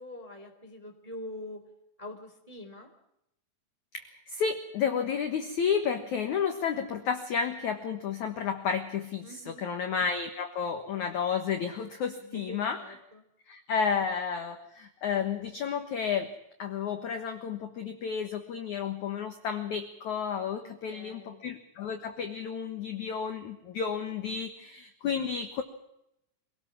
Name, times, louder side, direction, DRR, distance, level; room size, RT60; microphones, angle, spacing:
voice 1, 0.0-1.6 2.0-2.9 9.2-9.7 12.2-13.2 20.6-21.4, left 1 dB, 10° right, 4 dB, 2.3 m, -44 dB
voice 2, 3.9-12.8 13.5-16.3 16.6-25.6, left 6 dB, 75° left, 6 dB, 1.7 m, -31 dB
26.0 x 18.0 x 7.3 m, 0.81 s
omnidirectional pair, 5.7 m